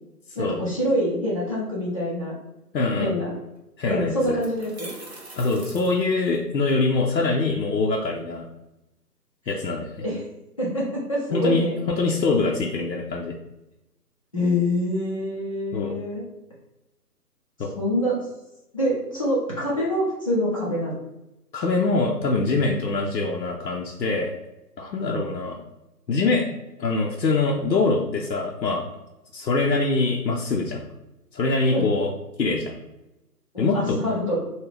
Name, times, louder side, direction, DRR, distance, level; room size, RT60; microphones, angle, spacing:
voice 1, 0.3-2.3 3.0-3.3 3.9-4.9 10.0-10.3 10.6-11.8 14.3-16.2 17.7-18.3 18.7-20.9 25.0-25.2 31.7-31.9 33.5-34.4, left 1 dB, 20° left, -7 dB, 0.6 m, -25 dB
voice 2, 2.7-3.2 3.8-4.4 5.4-8.5 9.5-10.0 11.3-13.3 15.7-15.9 17.6-17.7 21.5-24.3 24.8-25.6 26.1-26.5 26.8-28.8 29.3-30.8 31.3-32.1 32.4-32.7 33.6-34.0, left 3 dB, 85° left, -1 dB, 0.7 m, -24 dB
sound 1, 3.6-3.7 4.2-6.7, right 2 dB, 40° right, 0.5 m, -43 dB
3.5 x 2.3 x 3.3 m, 0.95 s
figure-of-eight pair, 150°, 49 cm